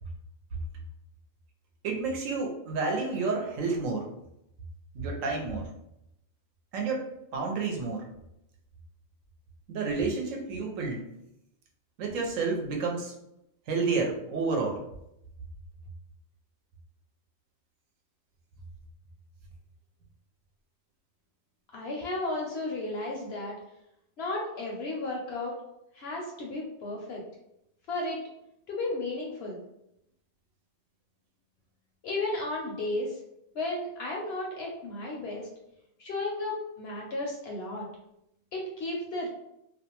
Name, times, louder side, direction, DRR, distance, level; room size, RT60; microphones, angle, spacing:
voice 1, 1.8-4.1 4.9-5.7 6.7-8.1 9.7-11.1 12.0-13.1 13.7-14.8, right 4 dB, 75° right, 1 dB, 1.0 m, -30 dB
voice 2, 21.7-23.5 24.2-25.5 25.9-27.2 27.9-28.2 28.7-29.6 32.0-33.2 33.5-35.5 36.0-37.9 38.5-39.3, left 2 dB, 65° left, -1 dB, 0.7 m, -33 dB
2.5 x 2.1 x 2.9 m, 0.81 s
omnidirectional pair, 1.4 m